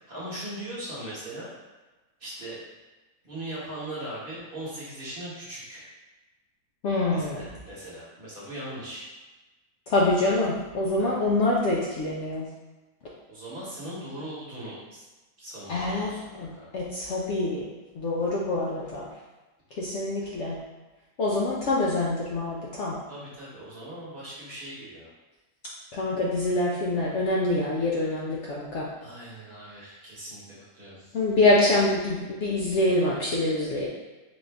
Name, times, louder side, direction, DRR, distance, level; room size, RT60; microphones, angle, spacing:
voice 1, 0.0-1.5 2.2-2.6 3.2-5.9 7.1-9.1 11.0-11.1 13.3-15.1 15.4-16.7 23.1-25.1 29.0-31.2, right 1 dB, 40° right, -8 dB, 1.2 m, -39 dB
voice 2, 6.8-7.4 9.9-12.4 15.7-17.7 17.9-19.1 19.7-20.6 21.2-22.9 25.9-28.9 31.1-33.9, left 2 dB, 65° left, -5 dB, 0.7 m, -25 dB
3.9 x 2.5 x 3.4 m, 1.2 s
omnidirectional pair, 1.7 m